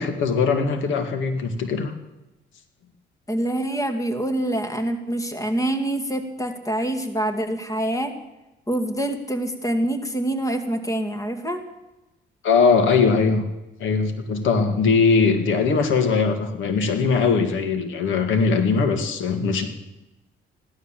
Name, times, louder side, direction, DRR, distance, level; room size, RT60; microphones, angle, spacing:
voice 1, 0.0-1.9 12.4-13.4 13.8-19.7, left 5 dB, 80° left, 8 dB, 2.0 m, -20 dB
voice 2, 3.3-8.1 8.7-11.6, right 1 dB, 15° left, 7 dB, 2.3 m, -25 dB
16.0 x 11.5 x 7.5 m, 0.98 s
cardioid pair, 90°, 20 cm